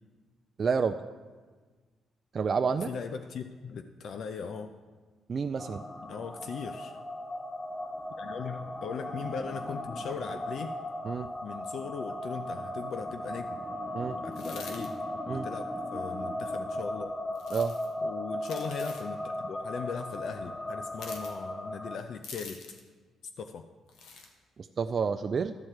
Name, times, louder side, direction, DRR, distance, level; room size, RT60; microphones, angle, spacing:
voice 1, 0.6-1.0 2.3-2.9 5.3-5.8 11.0-11.3 13.9-14.2 15.3-15.5 17.5-17.7 24.8-25.6, right 5 dB, 45° right, 7 dB, 0.4 m, -29 dB
voice 2, 2.9-4.7 6.0-7.0 8.2-10.8 11.4-13.5 14.2-14.9 15.2-15.7 15.9-17.1 18.0-22.6 23.4-23.7, left 6 dB, 65° left, 7 dB, 0.5 m, -39 dB
sound 1, 5.6-22.0, left 1 dB, 15° left, 0.7 m, -37 dB
sound 2, 14.3-14.9 17.4-17.9 18.4-19.1 20.9-21.3 22.2-22.9 23.9-24.3, left 4 dB, 85° left, 1.3 m, -45 dB
12.5 x 4.4 x 8.1 m, 1.4 s
cardioid pair, 90°, 0 cm